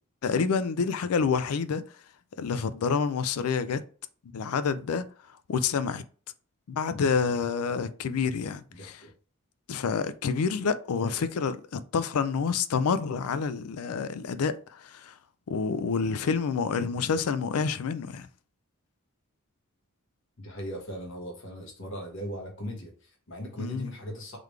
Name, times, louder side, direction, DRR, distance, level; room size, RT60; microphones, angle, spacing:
voice 1, 0.2-1.8 2.4-3.8 4.3-5.0 5.5-6.0 6.7-8.9 9.7-15.1 15.5-18.3 23.6-23.9, left 5 dB, 80° left, 0.4 m, -28 dB
voice 2, 8.7-9.1 11.0-11.3 16.9-17.2 20.4-24.4, equal, 60° left, 1.3 m, -39 dB
3.8 x 3.2 x 3.2 m
head